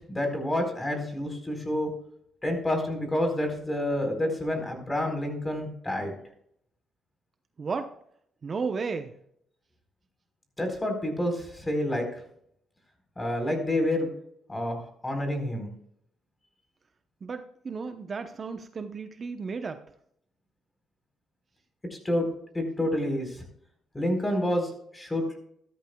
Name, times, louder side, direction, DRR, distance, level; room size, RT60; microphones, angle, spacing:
voice 1, 0.1-1.9 2.4-6.1 10.6-12.0 13.2-14.1 14.5-15.7 21.9-22.3 22.5-23.4 23.9-25.4, left 1 dB, 15° left, 5 dB, 4.3 m, -28 dB
voice 2, 7.6-8.0 8.4-9.2 17.2-19.8, right 5 dB, 40° right, 7 dB, 0.9 m, -34 dB
15.0 x 13.0 x 2.3 m, 0.69 s
cardioid pair, 90°, 0 cm